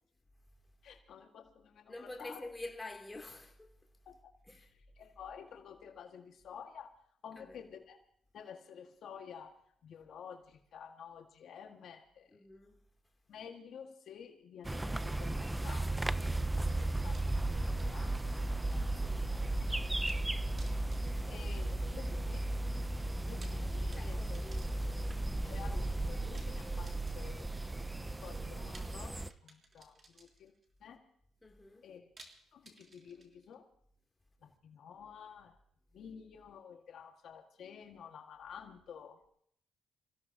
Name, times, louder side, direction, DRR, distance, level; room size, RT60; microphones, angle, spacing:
voice 1, 0.8-2.5 4.0-4.3 4.6-4.7 4.9-6.9 7.2-8.0 8.3-9.5 9.8-12.4 13.3-18.4 18.7-20.1 21.3-22.5 23.3-24.4 24.8-24.9 25.4-27.5 28.0-30.5 30.8-31.0 31.8-32.1 32.5-33.7 34.4-35.6 35.9-39.2, left 7 dB, 70° left, 1.7 m, -51 dB
voice 2, 1.9-3.9 4.4-4.7 7.3-7.6 12.3-12.9 19.0-19.4 23.9-24.9 31.4-31.9, left 2 dB, 15° left, 2.8 m, -48 dB
sound 1, 14.6-29.3, right 2 dB, 10° right, 0.5 m, -35 dB
sound 2, 17.1-18.7 18.9-19.0 20.1-20.3 20.6-22.1 23.2-25.3 26.3-27.5 28.7-30.6 32.2-33.5, right 3 dB, 40° right, 3.4 m, -59 dB
27.5 x 16.5 x 2.8 m
cardioid pair, 90°, 0 cm